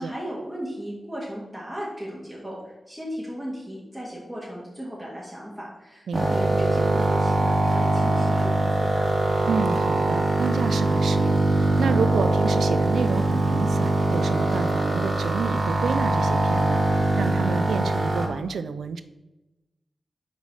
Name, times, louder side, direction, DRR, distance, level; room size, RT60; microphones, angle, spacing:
voice 1, 0.0-9.1, equal, 5° right, -6 dB, 1.7 m, -36 dB
sound 1, 6.1-18.3, right 2 dB, 45° right, 1.3 m, -22 dB
voice 2, 6.1-6.5 9.5-19.0, right 5 dB, 90° right, 12 dB, 0.3 m, -30 dB
5.5 x 4.0 x 4.7 m, 1.0 s
cardioid pair, 50°, 0 cm